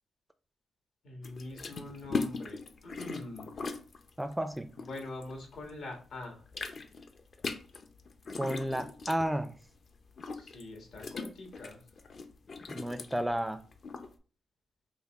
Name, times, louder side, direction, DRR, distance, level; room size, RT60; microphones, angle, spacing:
voice 1, 1.0-3.5 4.8-6.4 10.3-11.8, left 2 dB, 75° left, 1.4 m, -44 dB
sound 1, 1.2-5.8 6.1-14.1, left 4 dB, 55° left, 0.6 m, -40 dB
voice 2, 4.2-4.7 8.4-9.5 12.7-13.6, right 1 dB, 5° right, 0.4 m, -32 dB
5.3 x 2.1 x 3.5 m
cardioid pair, 75°, 0 cm